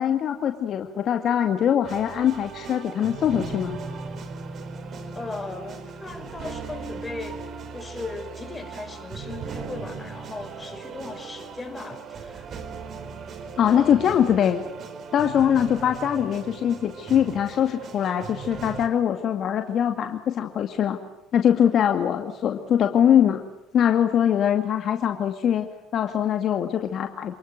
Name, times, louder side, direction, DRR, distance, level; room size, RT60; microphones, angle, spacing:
voice 1, 0.0-3.8 13.6-14.6 15.1-21.0 21.3-23.4 23.7-25.7 25.9-27.3, left 9 dB, 55° left, 6 dB, 2.3 m, -22 dB
sound 1, 1.8-18.9, right 5 dB, 50° right, 4.5 m, -38 dB
voice 2, 5.1-7.4 7.7-12.5 13.7-14.1, left 3 dB, 20° left, 7 dB, 6.1 m, -37 dB
29.0 x 20.5 x 8.1 m, 0.87 s
supercardioid pair, 75°, 0 cm